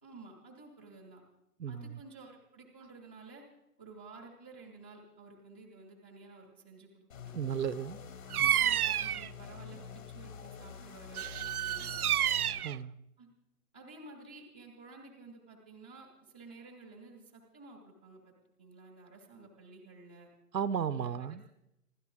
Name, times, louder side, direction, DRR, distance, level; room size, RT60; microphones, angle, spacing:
voice 1, 0.0-1.2 1.7-3.4 3.8-7.3 8.5-12.0 13.2-13.3 13.7-18.3 18.6-20.3 20.9-21.5, right 3 dB, 5° left, 0.6 m, -53 dB
voice 2, 1.6-2.0 7.3-8.0 8.4-8.6 12.6-12.9 20.5-21.4, right 8 dB, 85° right, 1.0 m, -34 dB
sound 1, 7.1-12.6, left 7 dB, 55° left, 2.4 m, -47 dB
Bird vocalization bird call bird song, 8.3-9.3 11.1-12.8, right 10 dB, 65° right, 0.6 m, -30 dB
26.0 x 12.0 x 3.7 m
hypercardioid pair, 160°, 48 cm